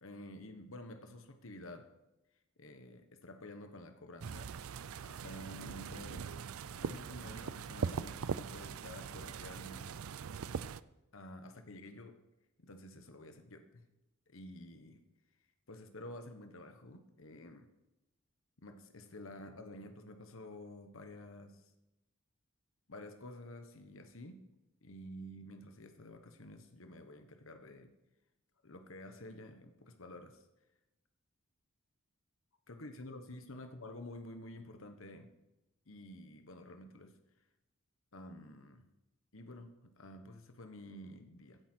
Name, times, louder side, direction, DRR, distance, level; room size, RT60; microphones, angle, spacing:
voice 1, 0.0-1.9 2.6-4.6 5.0-6.3 6.7-10.0 11.1-12.2 12.6-13.9 14.3-15.0 15.7-17.7 18.6-21.7 22.9-24.4 24.8-27.9 28.6-30.5 32.7-35.3 35.9-37.1 38.1-38.9 39.3-41.6, left 1 dB, 65° left, 7 dB, 1.2 m, -50 dB
sound 1, 4.2-10.8, right 6 dB, 75° right, 0.4 m, -41 dB
16.0 x 10.5 x 4.5 m, 0.97 s
head